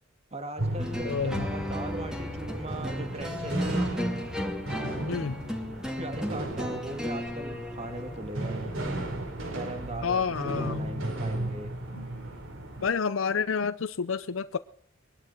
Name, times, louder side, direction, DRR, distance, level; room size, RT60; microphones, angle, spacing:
voice 1, 0.3-3.9 6.0-8.7 9.5-11.7, right 2 dB, 35° right, 2.3 m, -39 dB
sound 1, 0.6-12.9, right 1 dB, 80° right, 4.5 m, -34 dB
sound 2, 0.8-8.2, left 1 dB, 5° right, 2.6 m, -35 dB
voice 2, 1.0-1.5 5.1-5.4 10.0-10.8 12.8-14.6, left 6 dB, 75° left, 0.6 m, -29 dB
22.0 x 11.5 x 4.5 m
head